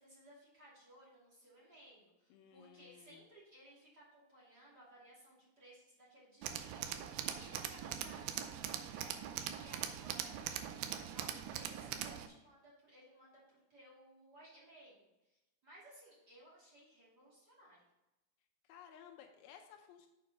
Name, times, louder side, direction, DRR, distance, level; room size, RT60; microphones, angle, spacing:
voice 1, 0.0-17.8, right 1 dB, 30° right, -6 dB, 2.3 m, -60 dB
voice 2, 2.3-3.3 18.7-20.1, left 8 dB, 90° left, 4 dB, 2.1 m, -57 dB
Tools, 6.4-12.3, right 10 dB, 80° right, 2.7 m, -42 dB
6.9 x 6.6 x 5.3 m, 0.96 s
omnidirectional pair, 5.2 m